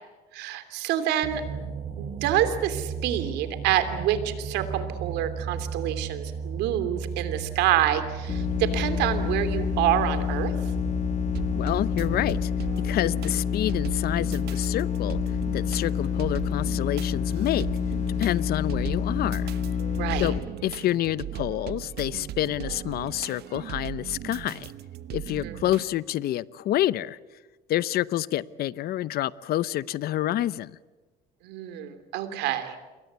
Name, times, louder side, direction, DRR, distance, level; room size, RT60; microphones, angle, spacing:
voice 1, 0.3-1.4 2.0-10.5 20.0-20.3 25.4-25.6 31.4-32.7, right 11 dB, 90° right, 3.1 m, -27 dB
sound 1, 1.2-12.5, right 6 dB, 55° right, 6.4 m, -35 dB
sound 2, 8.3-20.4, left 7 dB, 45° left, 1.9 m, -28 dB
sound 3, 11.3-25.8, right 11 dB, 75° right, 1.3 m, -38 dB
voice 2, 11.5-12.5 12.8-15.2 15.5-17.7 18.2-19.5 20.2-24.7 25.1-27.2 27.7-30.8, left 13 dB, 65° left, 0.8 m, -28 dB
28.5 x 22.5 x 8.2 m
cardioid pair, 110°, 17 cm